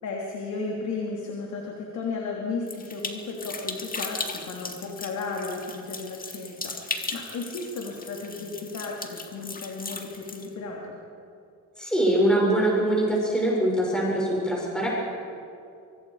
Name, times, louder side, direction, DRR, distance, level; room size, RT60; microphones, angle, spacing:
voice 1, 0.0-11.0, left 4 dB, 70° left, -1 dB, 3.2 m, -34 dB
sound 1, 2.7-10.5, left 3 dB, 30° left, 2.2 m, -37 dB
voice 2, 11.8-14.9, right 1 dB, 5° left, -4 dB, 6.6 m, -23 dB
25.0 x 24.0 x 5.0 m, 2.5 s
cardioid pair, 90°, 30 cm